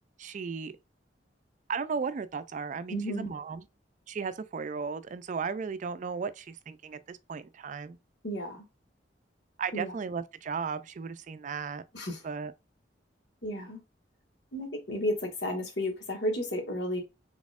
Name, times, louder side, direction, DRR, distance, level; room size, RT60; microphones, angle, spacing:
voice 1, 0.2-0.7 1.7-3.7 4.1-8.0 9.6-11.8 12.2-12.5, right 5 dB, 45° right, 0.4 m, -35 dB
voice 2, 2.9-3.3 8.2-8.6 9.7-9.9 11.9-12.2 13.4-13.8 14.5-17.0, equal, 75° left, 1.6 m, -32 dB
4.1 x 3.5 x 2.4 m
head